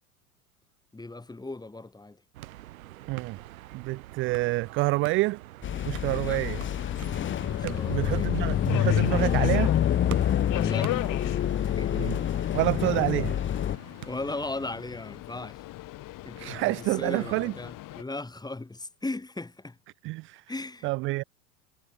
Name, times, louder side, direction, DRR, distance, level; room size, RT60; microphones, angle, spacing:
voice 1, 0.9-2.2 6.1-6.4 7.5-8.3 10.5-10.9 11.6-12.1 13.8-15.6 16.2-19.8 20.5-20.9, left 2 dB, 10° left, 6.4 m, -37 dB
sound 1, 2.3-14.5, right 16 dB, 65° right, 7.6 m, -45 dB
voice 2, 3.1-3.4 3.7-5.4 5.9-6.6 7.6-9.7 12.0-12.2 12.5-13.4 16.4-17.5 20.0-20.4 20.8-21.2, right 22 dB, 30° right, 0.5 m, -28 dB
sound 2, 5.6-13.8, left 11 dB, 25° left, 1.2 m, -27 dB
Subway metro underground, 6.4-18.0, left 17 dB, 45° left, 7.1 m, -40 dB
figure-of-eight pair, 80°, 45 cm